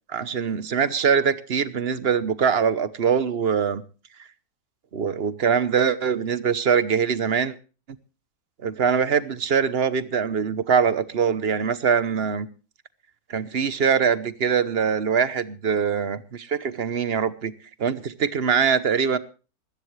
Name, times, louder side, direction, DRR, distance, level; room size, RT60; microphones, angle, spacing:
voice 1, 0.1-3.8 4.9-7.5 8.6-12.5 13.3-17.5 17.8-19.2, right 6 dB, 45° right, 15 dB, 1.0 m, -23 dB
20.5 x 15.5 x 3.2 m, 0.35 s
omnidirectional pair, 1.6 m